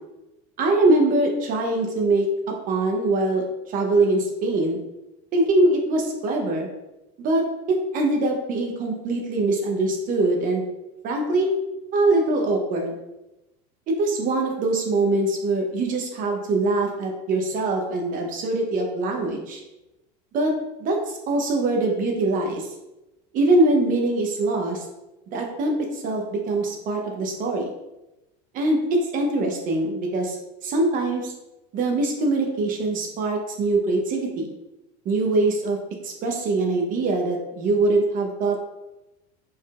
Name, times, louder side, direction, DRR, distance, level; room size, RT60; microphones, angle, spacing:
voice 1, 0.6-4.8 5.3-6.7 7.2-10.6 11.0-11.6 11.9-13.0 13.9-19.6 20.3-20.5 20.8-22.7 23.3-24.8 25.3-27.7 28.5-30.4 30.6-31.3 31.7-34.5 35.0-35.8 36.0-38.6, right 2 dB, 45° right, 1 dB, 0.8 m, -23 dB
4.4 x 3.7 x 2.4 m, 0.96 s
supercardioid pair, 125°, 20 cm